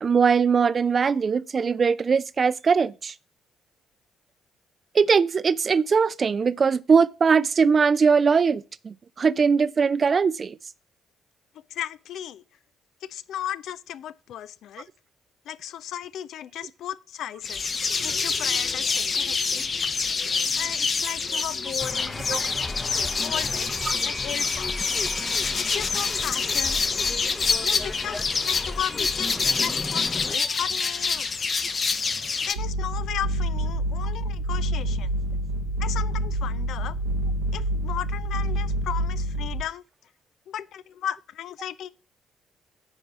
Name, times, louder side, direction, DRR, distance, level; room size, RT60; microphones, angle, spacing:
voice 1, 0.0-3.1 4.9-10.6 22.3-22.4, right 5 dB, 40° right, 0.5 m, -21 dB
voice 2, 11.7-12.4 13.1-14.9 15.5-17.6 18.0-19.6 20.5-22.5 23.2-24.7 25.6-26.8 27.6-31.3 31.6-31.8 32.4-35.1 35.8-37.0 37.5-39.8 40.5-41.9, left 11 dB, 60° left, 0.4 m, -35 dB
sound 1, 17.4-32.5, left 5 dB, 40° left, 1.0 m, -26 dB
sound 2, 21.8-30.4, left 2 dB, 20° left, 0.8 m, -35 dB
sound 3, 32.6-39.6, right 1 dB, 75° right, 1.1 m, -27 dB
9.9 x 4.6 x 6.9 m
figure-of-eight pair, 40°, 0 cm